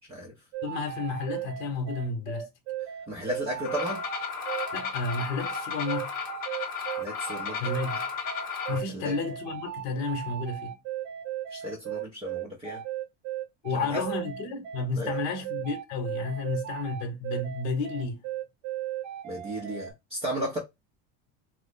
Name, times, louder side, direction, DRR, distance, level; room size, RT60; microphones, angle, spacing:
sound 1, 0.5-19.9, right 12 dB, 80° right, 0.9 m, -36 dB
voice 1, 0.6-2.5 4.7-6.1 7.6-8.0 8.7-10.8 13.6-18.2, left 3 dB, 45° left, 0.9 m, -31 dB
voice 2, 3.1-4.0 7.0-7.6 8.9-9.1 11.5-12.8 13.9-14.0 15.0-15.1 19.2-20.6, equal, 15° right, 0.5 m, -34 dB
sound 2, 3.6-8.8, left 6 dB, 25° left, 0.7 m, -34 dB
3.0 x 2.0 x 3.8 m
cardioid pair, 170°, 37 cm